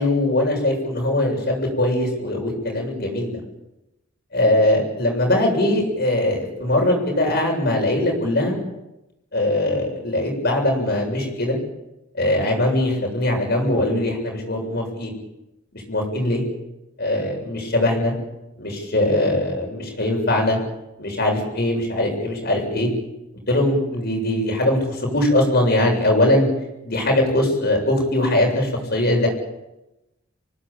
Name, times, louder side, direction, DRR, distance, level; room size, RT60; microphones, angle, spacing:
voice 1, 0.0-3.4 4.3-8.6 9.3-11.6 12.2-15.1 15.9-16.4 17.0-18.1 18.6-20.6 21.0-22.9 23.5-26.5 26.8-29.3, left 1 dB, 55° left, 1 dB, 7.6 m, -21 dB
27.5 x 18.5 x 8.9 m, 0.95 s
head